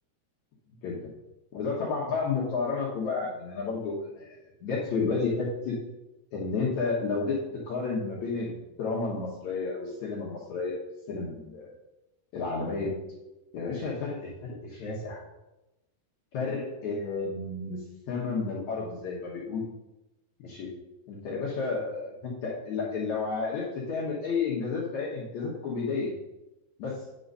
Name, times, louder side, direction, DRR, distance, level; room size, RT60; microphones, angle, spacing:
voice 1, 1.5-4.4 4.6-5.8 6.3-8.5 8.8-10.8 11.1-11.7 12.3-12.9 13.5-15.2 16.3-19.7 20.4-20.7 21.1-26.1 26.8-27.0, left 4 dB, 75° left, -5 dB, 1.7 m, -31 dB
9.3 x 3.9 x 5.4 m, 0.98 s
omnidirectional pair, 4.9 m